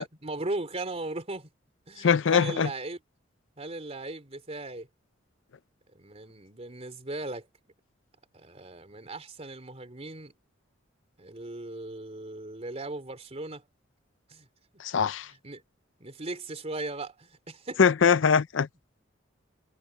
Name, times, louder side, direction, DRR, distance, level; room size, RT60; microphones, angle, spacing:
voice 1, 0.0-1.5 1.9-3.0 3.6-4.9 5.9-7.5 8.3-10.3 11.2-13.6 14.3-14.5 15.4-15.6 16.0-17.8, right 2 dB, 35° right, 3.3 m, -37 dB
voice 2, 2.0-2.7 14.8-15.3 17.8-18.7, left 6 dB, 70° left, 0.5 m, -22 dB
head